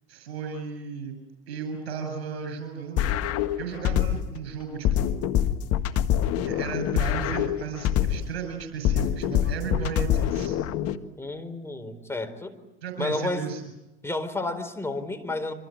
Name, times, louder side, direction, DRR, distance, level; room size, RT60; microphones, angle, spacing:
voice 1, 0.1-1.2 1.5-3.2 3.6-5.2 6.4-10.6 12.8-13.6, right 6 dB, 75° right, 6 dB, 7.3 m, -34 dB
sound 1, 3.0-4.4 4.8-8.4 8.8-11.0, left 11 dB, 50° left, 1.7 m, -25 dB
voice 2, 11.2-12.6 13.0-13.5 14.0-15.5, left 2 dB, 10° left, 6 dB, 4.4 m, -31 dB
27.5 x 26.0 x 7.8 m, 0.94 s
hypercardioid pair, 80°, 31 cm